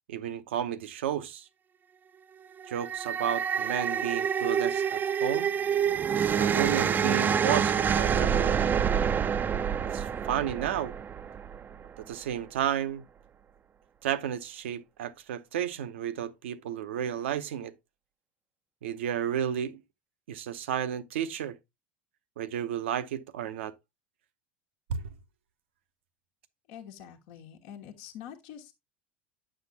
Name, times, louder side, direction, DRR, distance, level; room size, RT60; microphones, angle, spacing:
voice 1, 0.1-1.5 2.7-5.5 6.4-8.6 9.9-10.9 12.0-13.0 14.0-17.7 18.8-19.8 20.3-21.5 22.4-23.7 24.9-25.1, right 10 dB, 80° right, 0.8 m, -32 dB
sound 1, 2.6-11.9, right 7 dB, 30° right, 0.4 m, -27 dB
voice 2, 26.7-28.7, left 9 dB, 70° left, 1.2 m, -45 dB
9.4 x 6.4 x 2.7 m
hypercardioid pair, 85°, 6 cm